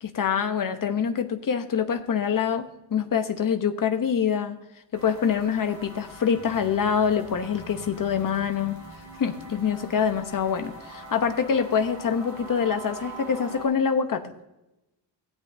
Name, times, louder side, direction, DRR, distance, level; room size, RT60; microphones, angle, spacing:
voice 1, 0.0-4.6 4.9-8.8 9.2-14.3, left 7 dB, 45° left, 7 dB, 0.9 m, -25 dB
sound 1, 4.9-13.7, right 2 dB, 35° right, 3.9 m, -43 dB
17.0 x 8.2 x 2.6 m, 0.94 s
wide cardioid pair, 175°, 45 cm